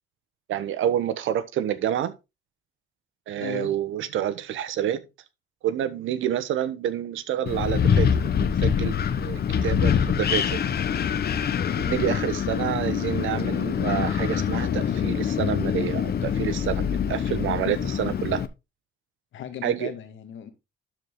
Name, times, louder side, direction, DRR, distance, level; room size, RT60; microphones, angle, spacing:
voice 1, 0.5-2.1 3.3-5.0 5.6-8.3 8.6-10.6 11.7-18.4 19.6-19.9, right 10 dB, 80° right, 1.1 m, -28 dB
voice 2, 3.4-3.7 10.7-11.2 12.1-12.2 19.3-20.5, left 10 dB, 75° left, 1.9 m, -37 dB
Wind, 7.5-18.5, left 8 dB, 55° left, 1.0 m, -25 dB
12.0 x 4.7 x 3.8 m
cardioid pair, 90°, 20 cm